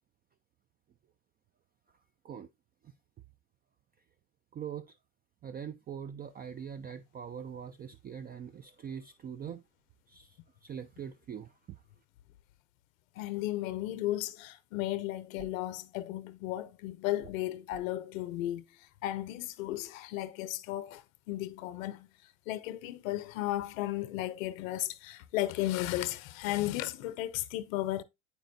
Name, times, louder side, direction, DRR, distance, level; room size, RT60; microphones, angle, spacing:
voice 1, 4.5-5.0 5.4-9.6 10.1-11.8, right 8 dB, 25° right, 0.3 m, -43 dB
voice 2, 13.2-18.6 19.0-22.1 22.5-28.0, left 15 dB, 85° left, 0.6 m, -34 dB
sound 1, 15.4-15.7 17.2-18.0, right 6 dB, 50° right, 0.8 m, -52 dB
8.1 x 5.1 x 2.5 m
supercardioid pair, 85°, 39 cm